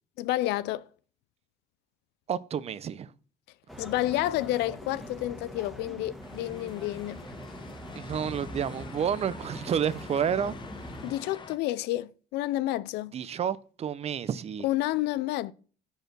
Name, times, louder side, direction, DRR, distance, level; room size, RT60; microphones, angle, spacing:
voice 1, 0.2-0.9 3.8-7.3 11.0-13.1 14.6-15.5, left 15 dB, 85° left, 0.5 m, -30 dB
voice 2, 2.3-3.1 7.9-10.6 10.8-10.9 13.1-14.6, right 8 dB, 40° right, 0.6 m, -30 dB
sound 1, 3.7-11.1, equal, ahead, 1.4 m, -43 dB
sound 2, 6.2-11.6, left 5 dB, 30° left, 0.8 m, -47 dB
6.5 x 5.4 x 6.0 m
cardioid pair, 110°, 17 cm